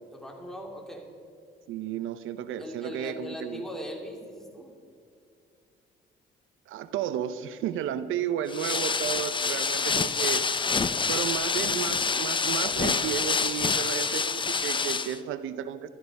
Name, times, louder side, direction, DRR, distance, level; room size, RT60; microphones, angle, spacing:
voice 1, 0.1-1.1 2.6-4.7, left 1 dB, ahead, 0 dB, 2.9 m, -40 dB
voice 2, 1.7-3.7 4.6-4.7 6.7-10.4 11.1-15.9, right 9 dB, 85° right, 12 dB, 0.7 m, -33 dB
sound 1, 8.5-15.2, left 5 dB, 25° left, 0.6 m, -27 dB
13.5 x 12.5 x 5.4 m, 2.4 s
cardioid pair, 90°, 20 cm